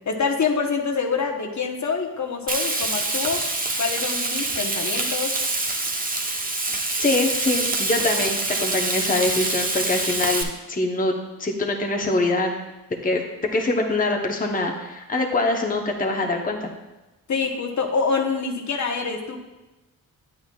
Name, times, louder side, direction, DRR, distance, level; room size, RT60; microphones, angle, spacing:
voice 1, 0.1-3.4 3.8-5.3 17.3-19.4, left 5 dB, 55° left, 2 dB, 1.0 m, -26 dB
Frying (food), 2.5-10.4, right 2 dB, 25° right, 0.9 m, -25 dB
voice 2, 7.0-11.1 11.4-12.5 13.0-16.7, left 2 dB, 25° left, 1 dB, 0.8 m, -24 dB
9.7 x 8.3 x 2.3 m, 1.1 s
cardioid pair, 85°, 35 cm